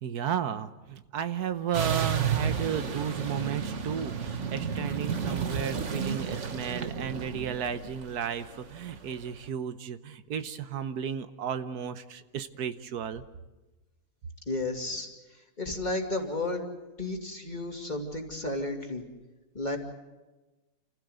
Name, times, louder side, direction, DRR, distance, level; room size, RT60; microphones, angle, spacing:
voice 1, 0.0-13.2, right 8 dB, 85° right, 11 dB, 1.5 m, -33 dB
sound 1, 1.7-9.1, right 7 dB, 55° right, 1.5 m, -32 dB
voice 2, 14.5-15.1 15.6-16.7 17.0-19.1 19.5-19.8, left 2 dB, 30° left, 2 dB, 2.7 m, -32 dB
28.5 x 15.5 x 8.0 m, 1.1 s
omnidirectional pair, 1.6 m